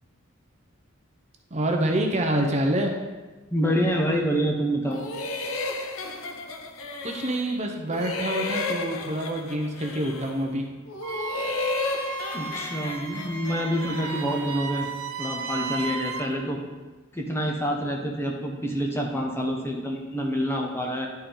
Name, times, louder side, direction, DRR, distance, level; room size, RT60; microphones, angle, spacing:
voice 1, 1.5-2.9 7.0-10.6, right 1 dB, 30° right, 2 dB, 0.7 m, -26 dB
voice 2, 3.5-5.0 12.3-14.9 15.2-16.6 17.1-21.1, equal, 10° left, 0 dB, 0.7 m, -27 dB
sound 1, 4.9-7.6 7.9-10.5 10.9-14.6, left 3 dB, 75° left, 0.8 m, -33 dB
Wind instrument woodwind instrument, 11.0-16.3, right 5 dB, 85° right, 0.6 m, -34 dB
11.0 x 4.3 x 3.8 m, 1.3 s
head